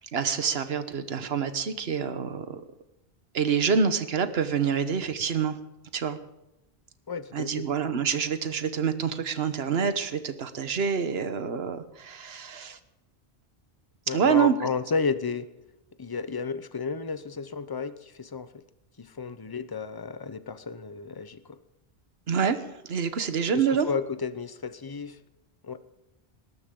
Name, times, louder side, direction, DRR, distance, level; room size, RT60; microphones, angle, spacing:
voice 1, 0.1-2.6 3.3-5.6 5.9-6.2 7.3-12.8 14.1-14.5 22.3-23.9, right 6 dB, 75° right, 10 dB, 1.3 m, -27 dB
voice 2, 7.1-7.6 14.1-15.5 16.0-18.6 19.0-21.6 23.5-25.2 25.6-25.8, left 5 dB, 25° left, 12 dB, 0.8 m, -32 dB
20.5 x 18.5 x 3.8 m, 0.91 s
omnidirectional pair, 1.1 m